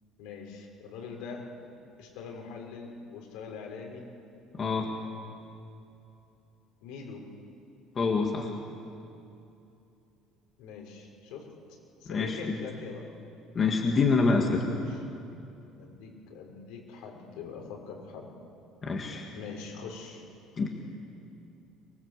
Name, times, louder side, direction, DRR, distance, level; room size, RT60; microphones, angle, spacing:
voice 1, 0.2-1.4 2.0-4.1 6.8-7.2 10.6-11.4 12.0-13.0 14.7-15.0 15.8-18.3 19.3-20.2, left 5 dB, 75° left, 0 dB, 5.4 m, -43 dB
voice 2, 4.5-4.9 8.0-8.5 12.1-12.4 13.6-14.6 18.8-19.2 20.6-20.7, left 4 dB, 25° left, 1 dB, 1.8 m, -26 dB
24.5 x 23.0 x 8.2 m, 2.7 s
cardioid pair, 165°, 0 cm